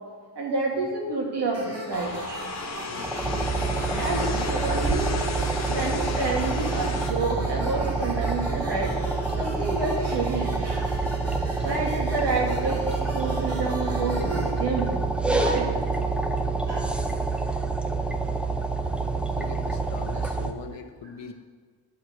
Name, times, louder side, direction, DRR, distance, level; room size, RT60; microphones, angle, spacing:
voice 1, 0.4-2.4 3.9-5.1 5.7-9.0 9.4-11.1 11.6-12.9 13.1-15.0 15.3-15.7 16.7-16.9 18.4-18.5, right 3 dB, 70° right, -1 dB, 2.3 m, -29 dB
sound 1, 1.5-14.5, right 2 dB, 35° right, 2.1 m, -40 dB
sound 2, 1.9-7.1, left 4 dB, 40° left, 0.9 m, -34 dB
voice 2, 2.8-3.6 3.9-4.5 4.8-5.2 5.7-5.9 19.3-21.3, left 7 dB, 90° left, 7 dB, 0.9 m, -40 dB
sound 3, 3.0-20.5, right 3 dB, 5° right, 0.5 m, -27 dB
11.0 x 4.8 x 7.9 m, 1.5 s
wide cardioid pair, 140°, 43 cm